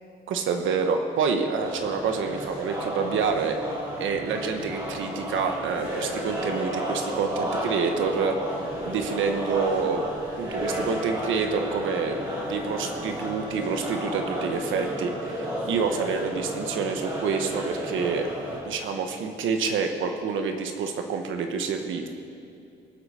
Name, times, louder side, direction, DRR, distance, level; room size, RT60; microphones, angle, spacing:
voice 1, 0.3-8.4 8.9-10.1 10.4-12.2 12.5-18.3 18.6-22.1, right 5 dB, 85° right, 5 dB, 1.2 m, -27 dB
sound 1, 1.6-18.6, equal, 20° right, 3.8 m, -32 dB
24.0 x 8.2 x 4.4 m, 2.5 s
cardioid pair, 180°, 20 cm